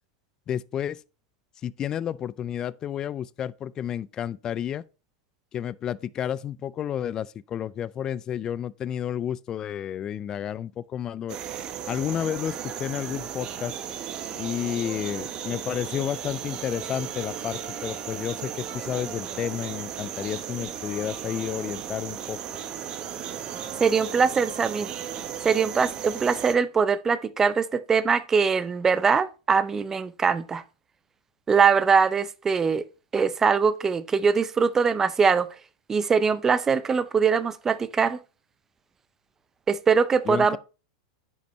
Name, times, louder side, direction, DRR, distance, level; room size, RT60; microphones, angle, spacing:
voice 1, 0.5-1.0 1.6-4.8 5.5-11.4 11.9-13.7 14.4-22.4 40.3-40.6, left 10 dB, 30° left, 0.4 m, -31 dB
sound 1, 11.3-26.5, right 9 dB, 35° right, 0.9 m, -35 dB
voice 2, 23.8-24.9 25.4-30.6 31.5-32.8 33.1-35.5 35.9-38.2 39.7-40.6, right 5 dB, 20° right, 0.5 m, -22 dB
10.0 x 5.6 x 3.1 m
hypercardioid pair, 105°, 2 cm